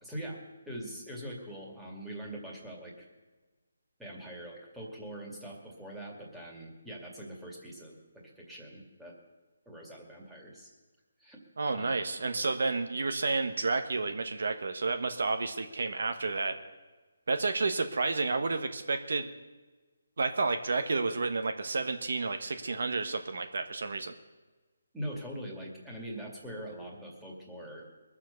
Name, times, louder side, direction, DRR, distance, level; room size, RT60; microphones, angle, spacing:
voice 1, 0.0-3.1 4.0-9.1 9.7-10.7 11.2-11.4 11.7-12.0 24.9-27.9, right 1 dB, 5° right, -3 dB, 2.2 m, -43 dB
voice 2, 11.6-16.6 17.3-19.3 20.2-24.1, right 3 dB, 70° right, 8 dB, 1.1 m, -31 dB
21.0 x 7.3 x 6.9 m, 1.3 s
hypercardioid pair, 160°, 0 cm